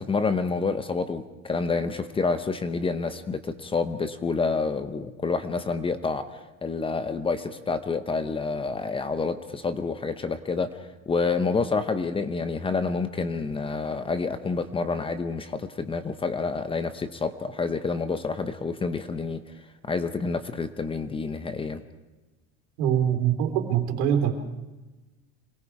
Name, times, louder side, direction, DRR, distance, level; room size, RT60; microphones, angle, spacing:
voice 1, 0.0-6.2 6.6-10.7 11.1-19.4 19.9-21.8, left 4 dB, 15° left, 11 dB, 0.9 m, -28 dB
voice 2, 22.8-24.3, right 9 dB, 85° right, 5 dB, 3.8 m, -23 dB
27.0 x 20.0 x 4.9 m, 1.1 s
cardioid pair, 155°, 34 cm